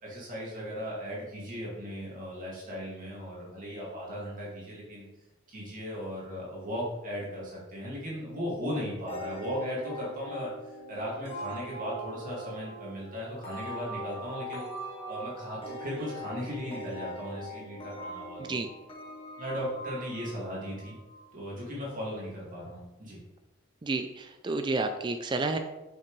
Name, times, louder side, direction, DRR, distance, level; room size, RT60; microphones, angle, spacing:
voice 1, 0.0-5.1 5.5-14.6 15.1-18.6 19.4-21.0 21.3-23.2, equal, 40° right, -5 dB, 2.1 m, -37 dB
sound 1, 9.1-21.5, right 1 dB, 25° left, 1.4 m, -41 dB
voice 2, 23.8-25.6, right 3 dB, 20° right, 6 dB, 0.4 m, -30 dB
7.1 x 5.9 x 3.2 m, 1.0 s
head